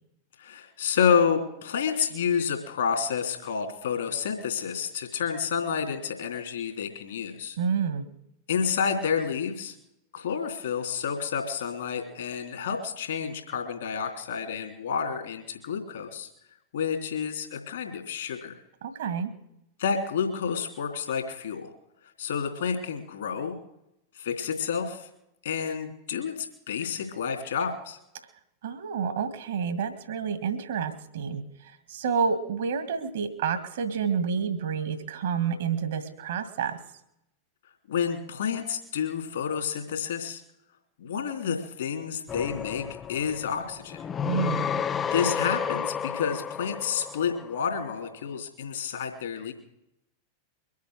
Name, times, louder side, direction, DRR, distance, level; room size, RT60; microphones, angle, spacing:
voice 1, 0.4-7.6 8.5-9.7 10.1-16.3 16.7-18.5 19.8-21.7 22.2-23.6 24.2-25.1 25.4-28.0 37.9-40.4 41.0-42.8 43.1-44.0 45.1-49.5, left 7 dB, 60° left, 4 dB, 3.3 m, -29 dB
voice 2, 7.6-8.1 18.8-19.3 28.6-36.8 44.3-44.7, right 6 dB, 60° right, 10 dB, 2.0 m, -29 dB
sound 1, 42.3-47.9, left 7 dB, 25° left, 0.5 m, -32 dB
23.0 x 8.4 x 6.5 m, 0.82 s
figure-of-eight pair, 90°, 0 cm